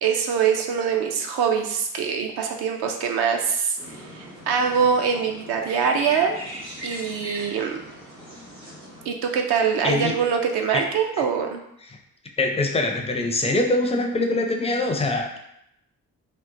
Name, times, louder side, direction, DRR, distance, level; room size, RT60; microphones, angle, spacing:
voice 1, 0.0-3.8 4.2-6.4 6.8-7.8 9.1-11.6, right 6 dB, 60° right, 3 dB, 0.6 m, -23 dB
sound 1, 3.8-9.1, equal, 75° right, 1.3 m, -38 dB
voice 2, 12.4-15.4, left 2 dB, 15° left, 3 dB, 0.4 m, -23 dB
2.9 x 2.1 x 2.5 m, 0.78 s
hypercardioid pair, 45°, 43 cm